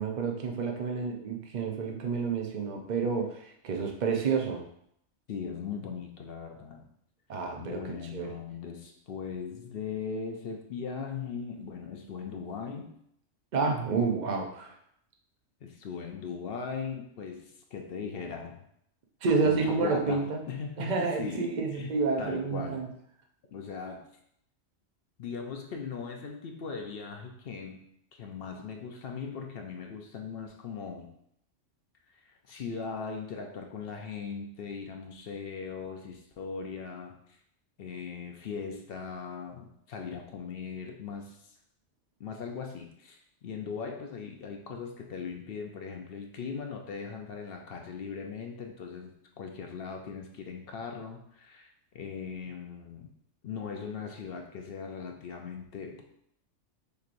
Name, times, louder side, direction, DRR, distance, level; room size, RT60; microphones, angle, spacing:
voice 1, 0.0-4.6 7.3-7.8 8.1-8.3 13.5-14.8 19.2-20.4 20.8-22.9, right 4 dB, 45° right, 2 dB, 0.7 m, -29 dB
voice 2, 5.3-6.8 7.6-13.0 15.6-18.6 19.4-21.9 22.2-22.9 23.5-24.0 25.2-27.8 28.1-31.1 32.2-37.1 37.8-41.5 42.2-51.7 51.9-53.1 53.4-56.0, left 5 dB, 60° left, 3 dB, 0.7 m, -39 dB
6.7 x 3.1 x 2.5 m, 0.72 s
omnidirectional pair, 1.3 m